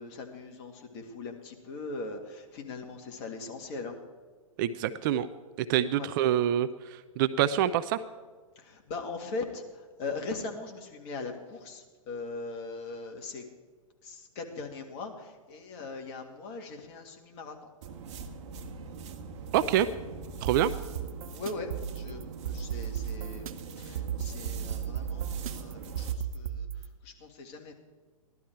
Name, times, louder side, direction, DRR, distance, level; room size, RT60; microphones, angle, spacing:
voice 1, 0.0-4.0 5.9-6.1 8.6-13.4 14.0-17.6 20.6-20.7 21.3-27.7, left 3 dB, 35° left, 3 dB, 2.1 m, -40 dB
voice 2, 4.6-5.3 5.6-8.0 19.5-19.9 20.4-20.7, right 11 dB, 35° right, 13 dB, 0.5 m, -26 dB
sound 1, 17.8-26.2, right 5 dB, 55° right, 1.5 m, -43 dB
sound 2, 20.3-26.9, right 9 dB, 75° right, 0.8 m, -35 dB
15.5 x 12.0 x 4.6 m, 1.5 s
hypercardioid pair, 125°, 18 cm